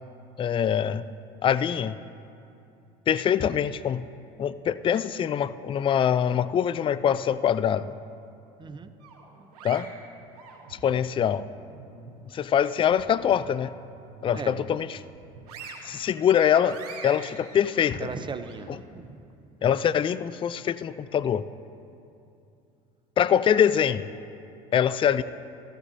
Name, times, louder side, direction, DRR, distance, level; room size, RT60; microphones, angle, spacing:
voice 1, 0.4-1.1 1.4-2.0 3.1-4.0 4.4-7.9 9.6-9.9 10.7-11.5 12.3-13.7 14.2-15.0 15.8-18.1 19.6-21.4 23.2-24.1 24.7-25.2, left 9 dB, 25° left, 15 dB, 0.4 m, -24 dB
voice 2, 8.6-8.9 14.3-14.5 18.0-19.6, right 5 dB, 25° right, 10 dB, 0.7 m, -38 dB
sound 1, 9.0-11.0 11.5-12.9 13.3-13.5 13.9-14.7 15.1-18.6, right 5 dB, 85° right, 2.7 m, -44 dB
15.0 x 14.5 x 2.7 m, 2.7 s
hypercardioid pair, 75°, 20 cm